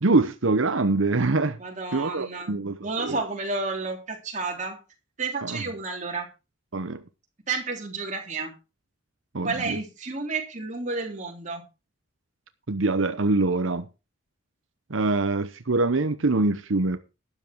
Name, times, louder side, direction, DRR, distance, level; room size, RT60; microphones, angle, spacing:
voice 1, 0.0-1.6 1.9-3.2 5.4-5.6 6.7-7.0 9.3-9.8 12.7-13.9 14.9-17.0, right 3 dB, 85° right, 0.9 m, -24 dB
voice 2, 1.6-4.8 5.2-6.3 7.5-8.5 9.4-11.6, right 3 dB, 35° right, 3.5 m, -31 dB
12.5 x 10.0 x 4.6 m
head